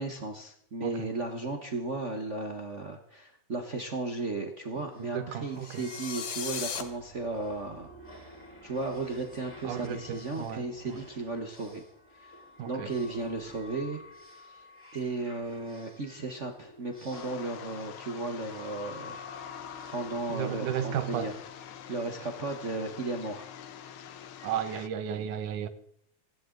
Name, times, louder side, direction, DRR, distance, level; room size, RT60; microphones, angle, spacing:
voice 1, 0.0-7.9 8.6-11.8 12.1-12.4 12.6-14.0 14.3-14.7 14.9-19.2 19.9-21.3 21.9-23.5, right 3 dB, 60° right, 0.7 m, -35 dB
sound 1, 4.7-22.4, left 1 dB, 5° left, 4.4 m, -51 dB
voice 2, 5.0-5.9 9.6-11.0 12.6-12.9 20.3-21.3 24.4-25.7, right 9 dB, 80° right, 2.6 m, -34 dB
sound 2, 5.6-6.8, left 7 dB, 50° left, 1.7 m, -36 dB
sound 3, 17.1-24.9, left 8 dB, 70° left, 1.3 m, -45 dB
27.5 x 11.0 x 3.9 m
omnidirectional pair, 3.5 m